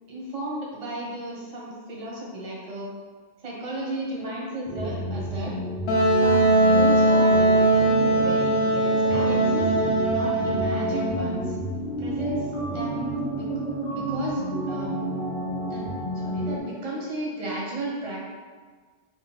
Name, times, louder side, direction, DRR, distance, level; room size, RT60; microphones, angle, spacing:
voice 1, 0.1-2.9 3.4-5.5 6.0-9.7 10.1-11.6 12.0-13.5 13.9-15.1 15.6-15.9 16.1-18.3, right 1 dB, 40° right, -3 dB, 0.6 m, -34 dB
sound 1, 4.6-16.6, right 1 dB, 35° left, 0.5 m, -31 dB
Wind instrument woodwind instrument, 5.9-11.4, right 1 dB, 65° left, 0.7 m, -20 dB
sound 2, 9.0-14.3, left 1 dB, 20° left, 0.9 m, -38 dB
2.9 x 2.0 x 3.0 m, 1.5 s
omnidirectional pair, 1.2 m